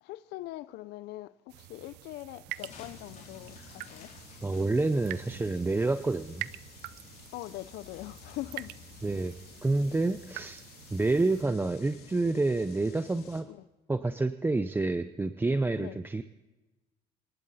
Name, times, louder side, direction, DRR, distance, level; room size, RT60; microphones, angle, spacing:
voice 1, 0.0-4.1 7.3-8.7 13.5-13.6 15.8-16.0, left 16 dB, 85° left, 0.5 m, -42 dB
sound 1, 1.5-11.4, right 17 dB, 90° right, 0.5 m, -46 dB
sound 2, 2.5-9.3, left 6 dB, 50° left, 4.3 m, -60 dB
sound 3, 2.6-13.4, left 7 dB, 70° left, 3.0 m, -52 dB
voice 2, 4.4-6.5 9.0-9.3 9.6-10.6 10.9-13.5 13.9-16.2, right 2 dB, 15° right, 0.7 m, -28 dB
25.5 x 12.0 x 4.1 m
cardioid pair, 110°, 17 cm